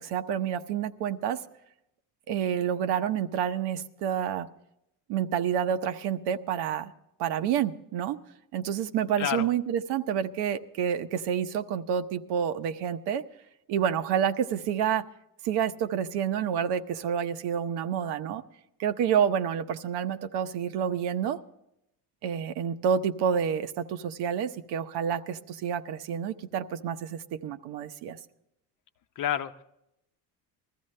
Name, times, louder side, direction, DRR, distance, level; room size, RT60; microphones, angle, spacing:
voice 1, 0.0-1.4 2.3-4.5 5.1-6.9 7.2-8.2 8.5-13.3 13.7-15.0 15.4-18.4 18.8-21.4 22.2-28.2, right 8 dB, 75° right, 9 dB, 0.9 m, -28 dB
voice 2, 9.2-9.5 29.2-29.6, left 10 dB, 50° left, 9 dB, 0.8 m, -29 dB
20.5 x 14.5 x 3.2 m, 0.82 s
cardioid pair, 135°, 40 cm